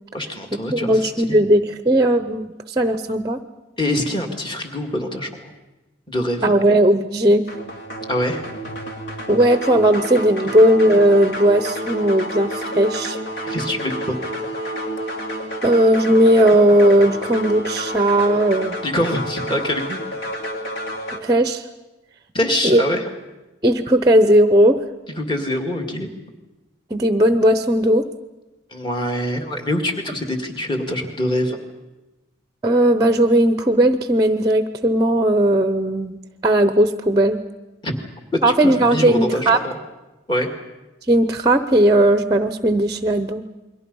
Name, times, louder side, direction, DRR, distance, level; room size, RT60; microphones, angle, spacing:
voice 1, 0.1-1.4 3.8-5.3 6.1-6.5 8.1-8.4 13.4-14.2 18.8-20.0 22.3-23.0 25.2-26.1 28.7-31.6 37.8-38.0 38.6-39.7 40.3-40.5, left 1 dB, 25° left, 3 dB, 2.1 m, -24 dB
voice 2, 0.7-3.4 6.4-7.5 9.3-13.2 15.6-18.8 21.2-21.6 22.6-22.8 23.6-24.8 26.9-28.1 32.6-37.4 38.4-39.6 41.1-43.4, right 1 dB, 20° right, 10 dB, 0.7 m, -17 dB
sound 1, 7.5-21.2, equal, 60° left, 2.5 m, -30 dB
29.0 x 22.5 x 5.4 m, 1.1 s
head